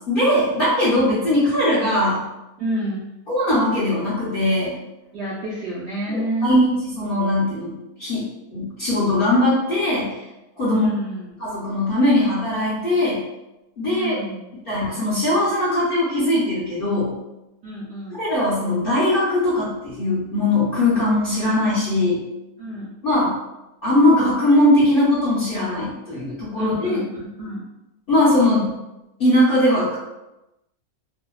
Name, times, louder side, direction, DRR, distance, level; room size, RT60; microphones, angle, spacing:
voice 1, 0.1-2.2 3.3-4.8 6.1-7.7 8.0-8.2 8.5-10.2 10.6-10.9 11.4-13.2 13.8-14.2 14.7-17.2 18.1-22.2 23.0-23.4 23.8-27.0 28.1-28.7 29.2-29.9, left 1 dB, 55° left, -8 dB, 0.6 m, -20 dB
voice 2, 2.6-3.1 5.1-6.5 10.7-11.3 13.9-14.5 17.6-18.2 22.6-22.9 26.6-27.6, right 1 dB, 65° right, -8 dB, 0.6 m, -29 dB
2.7 x 2.1 x 2.2 m, 0.95 s
omnidirectional pair, 1.6 m